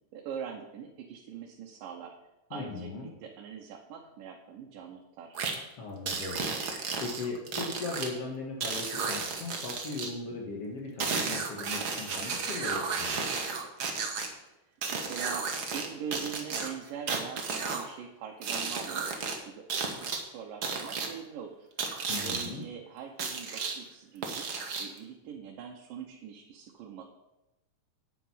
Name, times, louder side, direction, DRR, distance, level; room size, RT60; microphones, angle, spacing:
voice 1, 0.1-2.1 2.5-5.4 14.9-19.0 19.4-21.6 22.2-24.5 24.8-27.0, right 7 dB, 85° right, 0 dB, 2.7 m, -43 dB
voice 2, 2.5-3.1 5.8-6.5 6.8-13.3 22.1-22.6, left 3 dB, 55° left, -1 dB, 2.2 m, -38 dB
sound 1, 5.3-5.5 6.1-8.1 8.6-10.1 11.0-14.3 14.8-15.9 16.1-17.8 18.4-19.3 19.7-20.2 20.6-21.1 21.8-22.5 23.2-23.7 24.2-25.0, right 4 dB, 60° right, 1.0 m, -33 dB
9.3 x 9.0 x 5.6 m, 0.96 s
omnidirectional pair, 3.8 m